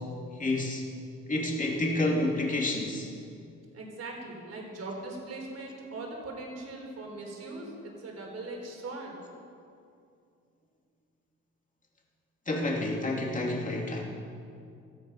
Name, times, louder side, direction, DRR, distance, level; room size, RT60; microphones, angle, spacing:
voice 1, 0.4-0.8 1.3-3.1 12.5-14.0, left 2 dB, 25° left, -1 dB, 2.8 m, -29 dB
voice 2, 3.7-9.2, right 2 dB, 55° right, 0 dB, 4.2 m, -40 dB
15.5 x 13.0 x 5.7 m, 2.5 s
cardioid pair, 90°, 30 cm